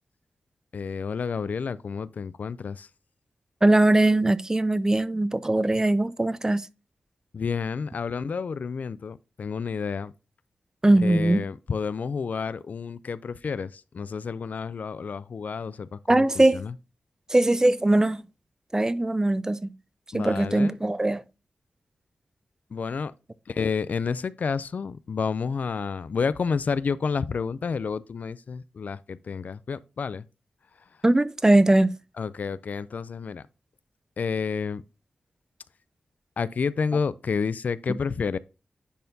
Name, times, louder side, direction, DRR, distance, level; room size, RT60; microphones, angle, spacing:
voice 1, 0.7-2.9 7.3-10.1 11.0-16.3 16.5-16.7 20.1-20.8 22.7-23.1 23.5-30.2 32.2-33.5 34.2-34.8 36.4-38.4, left 5 dB, 65° left, 0.4 m, -30 dB
voice 2, 3.6-6.6 10.8-11.4 16.1-16.6 17.3-18.2 18.7-19.7 20.1-21.2 31.0-31.9, right 1 dB, 20° right, 0.4 m, -20 dB
10.0 x 4.3 x 2.7 m
cardioid pair, 55°, 3 cm